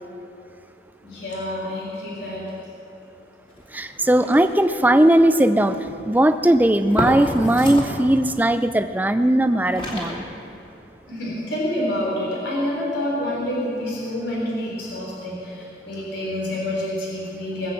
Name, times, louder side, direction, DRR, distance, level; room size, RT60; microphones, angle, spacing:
voice 1, 1.0-2.7 11.1-17.7, left 1 dB, 85° left, -4 dB, 3.8 m, -28 dB
sound 1, 3.5-3.9 4.2-4.7 5.2-5.4 5.7-6.2 6.8-8.0 9.3-9.4 9.6-10.5, equal, 30° left, 2.6 m, -29 dB
voice 2, 3.7-5.8 6.1-10.2, right 1 dB, 10° right, 10 dB, 0.4 m, -18 dB
20.0 x 7.9 x 7.5 m, 2.8 s
head